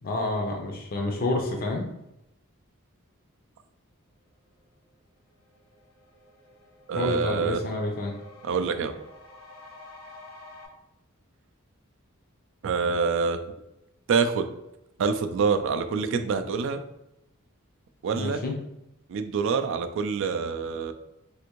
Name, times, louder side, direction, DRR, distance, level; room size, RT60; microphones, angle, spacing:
voice 1, 0.0-1.9 6.9-8.1 18.1-18.5, left 2 dB, 45° left, 2 dB, 0.5 m, -29 dB
sound 1, 4.9-5.0 5.3-10.7, left 2 dB, 70° left, 1.0 m, -49 dB
voice 2, 6.9-7.6 8.4-9.0 12.6-13.4 14.1-14.4 15.0-16.8 18.0-18.4 19.1-20.9, right 5 dB, 65° right, 8 dB, 0.3 m, -26 dB
3.4 x 2.5 x 3.0 m, 0.87 s
head